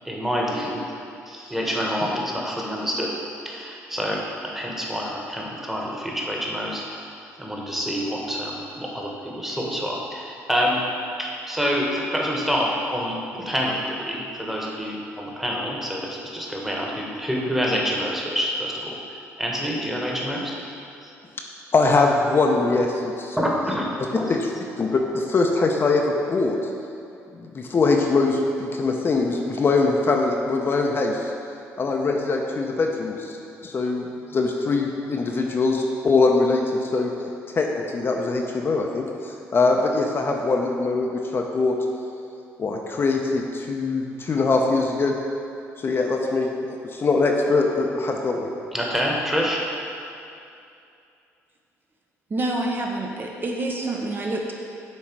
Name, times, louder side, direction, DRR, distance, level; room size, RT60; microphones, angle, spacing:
voice 1, 0.0-0.8 1.3-3.1 3.4-7.1 7.4-10.9 11.2-20.6 21.0-21.1 23.4-23.8 24.1-24.2 48.7-49.6, equal, 5° right, -3 dB, 1.2 m, -27 dB
voice 2, 21.7-23.4 24.3-24.5 24.8-26.7 27.3-31.3 31.8-34.1 34.3-37.1 37.5-41.8 42.6-45.2 45.8-48.5, left 3 dB, 40° left, 1 dB, 0.6 m, -22 dB
voice 3, 52.3-54.5, right 2 dB, 35° right, 0 dB, 0.7 m, -27 dB
7.5 x 3.1 x 4.6 m, 2.6 s
supercardioid pair, 75°, 6 cm